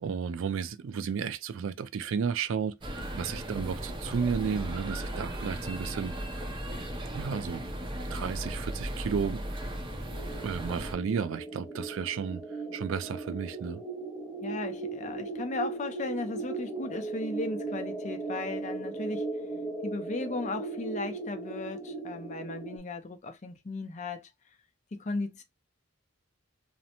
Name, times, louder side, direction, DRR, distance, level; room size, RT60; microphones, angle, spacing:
voice 1, 0.0-6.2 7.1-7.6 8.1-9.4 10.4-13.8, right 6 dB, 70° right, 0.3 m, -33 dB
sound 1, 2.8-10.9, right 1 dB, 25° right, 0.6 m, -36 dB
sound 2, 10.1-22.8, right 3 dB, ahead, 1.0 m, -37 dB
voice 2, 14.4-19.3 19.8-24.3 24.9-25.4, left 3 dB, 35° left, 0.5 m, -36 dB
2.5 x 2.1 x 2.8 m
head